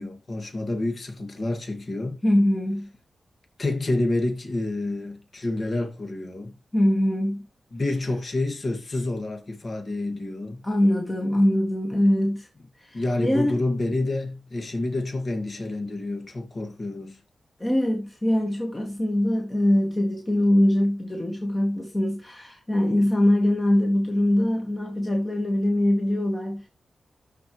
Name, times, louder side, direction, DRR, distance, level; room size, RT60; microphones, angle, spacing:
voice 1, 0.0-2.2 3.6-6.5 7.7-10.6 12.9-17.2, left 2 dB, 40° left, 2.0 m, -28 dB
voice 2, 2.2-2.9 6.7-7.5 10.6-12.5 12.8-13.6 17.6-26.7, left 1 dB, 20° left, 1.8 m, -23 dB
13.0 x 4.6 x 3.1 m
wide cardioid pair, 120°, 0 cm